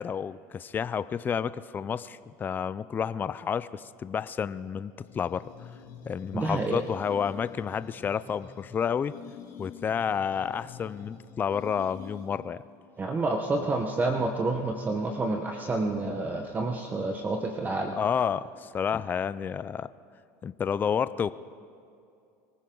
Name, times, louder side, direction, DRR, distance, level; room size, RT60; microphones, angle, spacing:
voice 1, 0.0-5.4 6.1-9.1 9.6-12.6 18.0-19.9 20.4-21.3, left 7 dB, 25° left, 15 dB, 0.4 m, -30 dB
sound 1, 5.0-12.6, left 7 dB, 60° left, 2.2 m, -48 dB
voice 2, 6.3-6.8 13.0-18.0, right 2 dB, 25° right, 3 dB, 1.2 m, -29 dB
23.5 x 15.5 x 3.9 m, 2.5 s
supercardioid pair, 110°, 7 cm